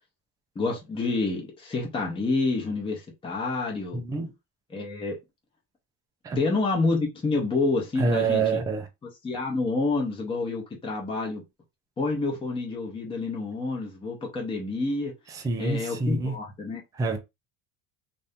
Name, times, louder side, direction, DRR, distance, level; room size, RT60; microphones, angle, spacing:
voice 1, 0.6-4.0 4.7-5.2 6.4-8.6 9.2-11.4 12.0-15.1 15.6-16.8, left 3 dB, 15° left, 0.7 m, -28 dB
voice 2, 3.9-4.3 6.2-6.4 8.0-8.9 15.3-16.3 17.0-17.2, right 4 dB, 10° right, 0.3 m, -26 dB
2.7 x 2.6 x 3.4 m
cardioid pair, 165°, 38 cm